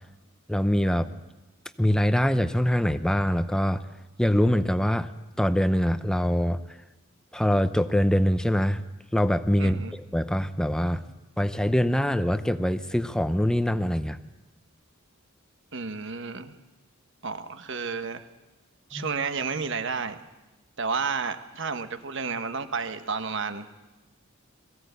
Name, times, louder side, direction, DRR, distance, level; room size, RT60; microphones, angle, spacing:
voice 1, 0.5-1.1 1.8-3.8 4.2-5.1 5.4-6.6 7.3-8.8 9.1-11.0 11.4-14.2 18.9-19.1, equal, 5° left, 12 dB, 0.7 m, -24 dB
voice 2, 9.6-9.9 15.7-16.5 17.2-18.2 18.9-20.2 20.8-23.7, right 5 dB, 60° right, 9 dB, 1.2 m, -31 dB
22.0 x 16.0 x 8.2 m, 1.1 s
head